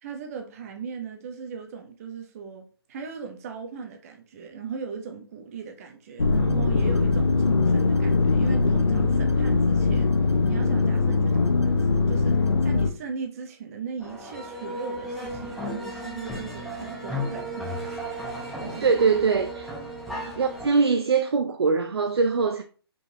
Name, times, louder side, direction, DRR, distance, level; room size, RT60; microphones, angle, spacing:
voice 1, 0.0-10.1 10.5-18.0 18.6-19.2 20.1-20.3, right 6 dB, 35° right, 0.7 m, -38 dB
sound 1, 6.2-12.9, left 4 dB, 85° left, 0.7 m, -21 dB
sound 2, 14.0-20.7, equal, ahead, 0.8 m, -35 dB
voice 2, 18.8-19.7 20.4-22.6, right 5 dB, 70° right, 0.5 m, -22 dB
4.9 x 3.9 x 2.7 m
figure-of-eight pair, 140°, 14 cm